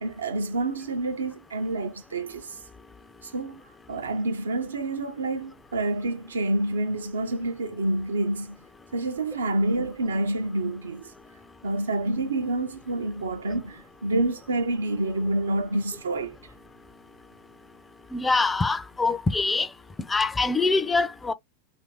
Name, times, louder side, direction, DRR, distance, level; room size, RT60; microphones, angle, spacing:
voice 1, 0.0-2.5 3.2-3.6 3.9-8.6 8.9-11.1 11.6-16.4, right 2 dB, 70° right, 0.5 m, -28 dB
voice 2, 18.1-19.7 20.1-21.3, left 3 dB, 10° left, 0.4 m, -24 dB
2.7 x 2.5 x 2.9 m
figure-of-eight pair, 90°, 0 cm